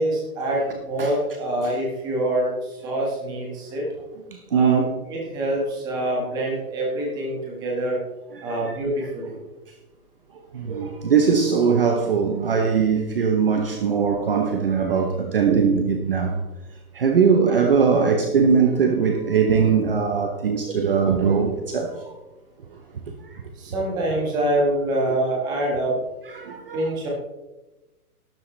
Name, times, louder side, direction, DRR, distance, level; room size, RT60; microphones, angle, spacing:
voice 1, 0.0-3.8 4.5-8.0 8.4-9.4 23.6-26.0 26.7-27.1, right 1 dB, 10° right, -2 dB, 1.6 m, -25 dB
voice 2, 4.5-4.9 8.3-8.6 10.5-16.4 16.9-21.9 26.3-26.8, right 6 dB, 40° right, 4 dB, 0.9 m, -20 dB
12.0 x 12.0 x 3.3 m, 1.1 s
hypercardioid pair, 175°, 45 cm